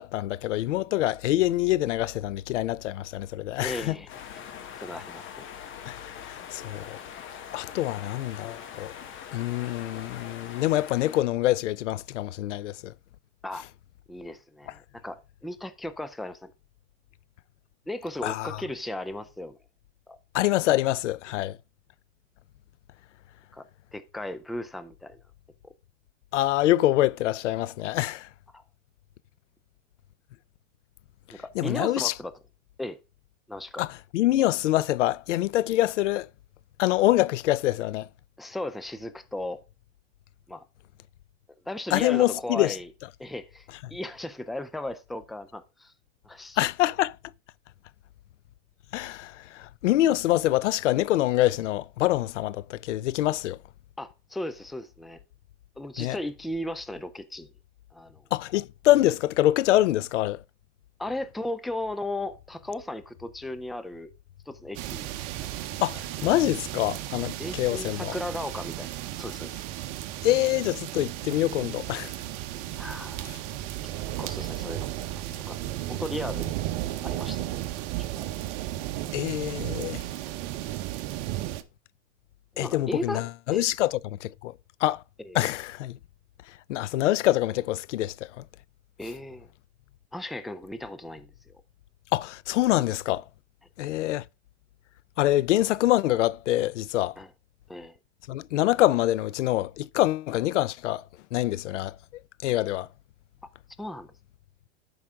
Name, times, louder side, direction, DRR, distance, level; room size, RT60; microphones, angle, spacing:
voice 1, 0.0-4.0 5.9-7.0 7.5-8.9 9.3-12.9 18.2-18.6 20.3-21.6 26.3-28.3 31.6-32.1 33.8-36.3 36.8-38.1 41.9-42.8 46.6-47.2 48.9-53.6 56.0-56.2 58.3-60.4 65.8-68.2 70.2-72.1 79.1-80.0 82.6-84.5 84.8-85.0 85.3-86.0 86.7-88.4 92.1-93.2 93.8-94.2 95.2-97.2 98.3-101.0 101.3-102.0 102.4-102.9, left 15 dB, 90° left, 0.5 m, -25 dB
voice 2, 3.6-4.1 4.8-5.4 13.4-13.7 14.1-16.5 17.9-19.6 20.1-20.2 23.5-23.6 23.9-25.2 25.6-25.7 28.5-28.6 31.3-32.3 32.8-33.0 33.5-33.9 38.4-39.6 40.5-40.6 41.7-42.9 43.2-45.9 46.2-46.6 54.0-55.2 55.8-57.5 57.9-58.2 61.0-64.1 64.5-65.1 65.4-65.5 67.4-69.7 72.7-73.4 73.8-73.9 74.2-75.0 75.3-75.6 75.9-76.6 77.0-77.5 78.0-78.3 82.6-83.2 83.5-83.7 85.2-85.5 89.0-89.5 90.1-91.5 97.2-97.3 97.7-98.0 103.8-104.1, left 1 dB, ahead, 0.3 m, -36 dB
sound 1, 4.1-11.2, left 8 dB, 35° left, 1.3 m, -42 dB
sound 2, 64.7-81.6, right 14 dB, 50° right, 1.0 m, -34 dB
12.0 x 4.9 x 3.6 m
hypercardioid pair, 120°, 35 cm